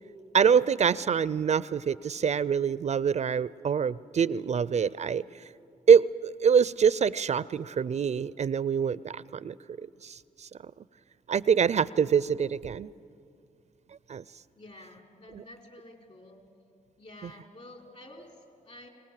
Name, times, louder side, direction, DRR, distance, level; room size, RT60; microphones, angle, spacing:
voice 1, 0.3-5.2 5.9-10.5 11.3-12.9 14.1-14.2, right 7 dB, 50° right, 19 dB, 0.4 m, -25 dB
voice 2, 14.6-16.4 17.0-18.9, left 1 dB, 50° left, 3 dB, 4.3 m, -50 dB
24.5 x 18.5 x 7.5 m, 2.4 s
cardioid pair, 55°, 15 cm